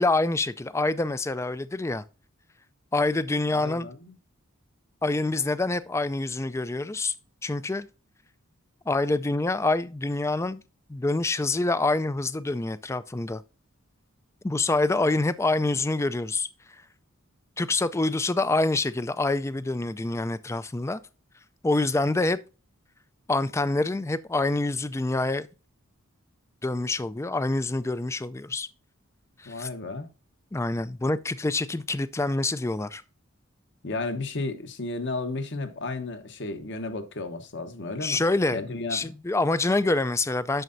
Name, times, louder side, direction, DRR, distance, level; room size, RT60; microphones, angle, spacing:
voice 1, 0.0-2.0 2.9-3.9 5.0-7.1 7.4-7.9 8.9-10.6 10.9-13.4 14.4-16.5 17.6-21.0 21.6-22.4 23.3-25.5 26.6-28.7 29.4-29.7 30.5-33.0 38.0-38.6 38.9-40.6, left 2 dB, 15° left, 0.3 m, -26 dB
voice 2, 3.5-4.1 29.4-30.1 33.8-38.2 38.5-39.1, left 3 dB, 55° left, 1.1 m, -33 dB
9.2 x 6.7 x 2.6 m
head